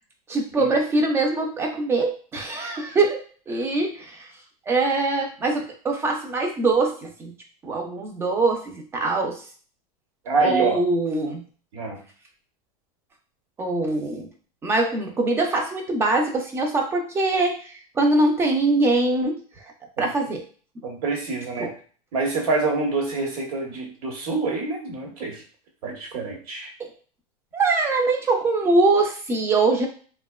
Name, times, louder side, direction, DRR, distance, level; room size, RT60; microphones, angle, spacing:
voice 1, 0.3-4.3 4.7-7.3 7.6-9.4 10.4-11.4 13.6-14.3 14.6-19.7 20.0-20.4 21.6-21.7 27.5-29.9, right 2 dB, 15° right, 2 dB, 0.4 m, -23 dB
voice 2, 10.2-10.8 11.7-12.0 20.0-20.1 20.8-21.7 22.1-25.4 25.8-26.7, right 3 dB, 75° right, 0 dB, 1.1 m, -26 dB
2.8 x 2.1 x 2.2 m, 0.41 s
supercardioid pair, 150°, 18 cm